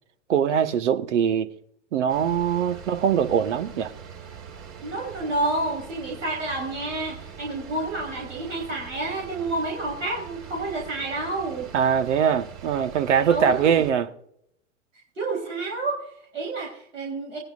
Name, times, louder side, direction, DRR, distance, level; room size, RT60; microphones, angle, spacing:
voice 1, 0.3-1.5 1.9-3.9 11.7-14.1, right 8 dB, 70° right, 1.3 m, -22 dB
sound 1, 2.1-13.9, right 7 dB, 45° right, 3.3 m, -43 dB
voice 2, 4.8-11.7 13.3-13.7 15.2-17.4, right 2 dB, 85° right, 4.0 m, -29 dB
19.5 x 10.0 x 2.5 m
hypercardioid pair, 110°, 37 cm